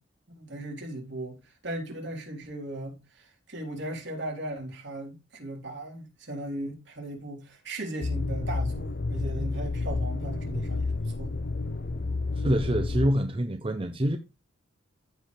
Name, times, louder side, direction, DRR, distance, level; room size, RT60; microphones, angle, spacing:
voice 1, 0.4-11.4, right 1 dB, 60° right, 3.7 m, -37 dB
sound 1, 8.0-13.1, left 3 dB, 50° left, 0.6 m, -30 dB
voice 2, 12.4-14.2, right 1 dB, 25° right, 0.7 m, -26 dB
15.0 x 5.2 x 3.3 m
head